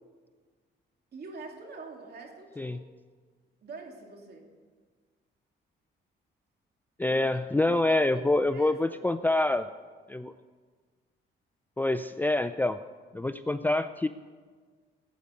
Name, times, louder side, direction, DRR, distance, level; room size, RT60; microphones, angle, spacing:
voice 1, 1.1-2.8 3.6-4.5 7.1-7.2 7.7-9.0, right 3 dB, 55° right, 1 dB, 2.8 m, -45 dB
voice 2, 7.0-9.7 10.1-10.3 11.8-12.8 13.1-14.1, left 2 dB, 10° left, 11 dB, 0.4 m, -26 dB
17.5 x 8.4 x 5.2 m, 1.5 s
cardioid pair, 90°, 20 cm